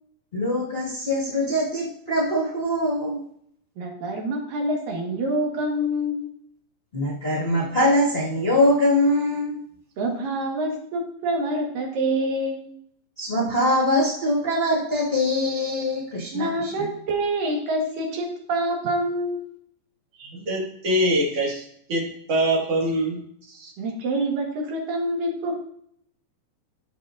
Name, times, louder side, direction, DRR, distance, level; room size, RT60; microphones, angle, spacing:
voice 1, 0.3-3.2 6.9-9.6 13.2-16.9, left 1 dB, 85° left, -5 dB, 0.5 m, -23 dB
voice 2, 3.8-6.3 10.0-12.6 16.3-19.5 23.8-25.6, right 1 dB, 65° right, 0 dB, 3.0 m, -26 dB
voice 3, 20.2-23.2 23.5-23.7, equal, 45° right, -3 dB, 2.5 m, -24 dB
13.5 x 6.8 x 2.5 m, 0.68 s
omnidirectional pair, 4.4 m